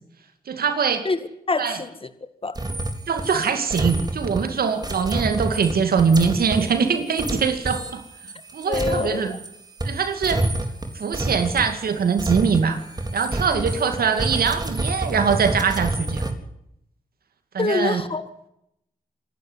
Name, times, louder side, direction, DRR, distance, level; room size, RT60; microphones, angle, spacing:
voice 1, 0.5-1.1 1.6-1.8 3.1-8.0 8.5-9.4 9.8-10.5 10.9-12.8 13.1-16.2 17.5-18.0, right 6 dB, 85° right, 7 dB, 2.5 m, -22 dB
voice 2, 1.5-2.1 2.4-2.6 8.7-9.4 13.5-13.7 17.6-18.2, left 3 dB, 35° left, 11 dB, 1.9 m, -25 dB
sound 1, 2.5-9.5 9.8-16.3, right 2 dB, 25° right, 3.8 m, -29 dB
26.5 x 11.5 x 9.7 m, 0.78 s
cardioid pair, 65°, 15 cm